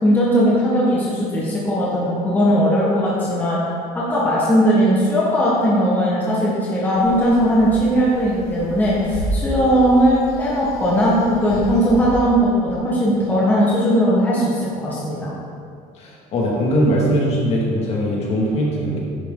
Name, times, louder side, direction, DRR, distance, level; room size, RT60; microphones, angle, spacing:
voice 1, 0.0-3.6 3.9-15.3, equal, 10° left, -7 dB, 1.5 m, -18 dB
sound 1, 6.9-12.1, right 1 dB, 40° right, 2.5 m, -31 dB
voice 2, 16.0-19.0, equal, 40° left, -4 dB, 2.3 m, -20 dB
10.5 x 8.4 x 3.9 m, 2.3 s
cardioid pair, 170°, 16 cm